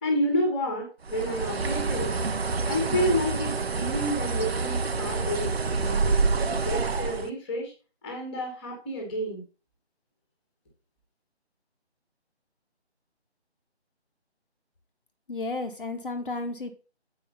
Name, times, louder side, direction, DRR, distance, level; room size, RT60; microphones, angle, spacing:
voice 1, 0.0-2.1 2.7-7.7 8.0-9.4, equal, 10° left, 1 dB, 1.4 m, -30 dB
Bird, 1.1-7.3, right 4 dB, 65° right, 0.9 m, -27 dB
voice 2, 15.3-16.7, left 3 dB, 50° left, 6 dB, 1.1 m, -32 dB
7.8 x 4.9 x 5.5 m, 0.34 s
figure-of-eight pair, 170°, 33 cm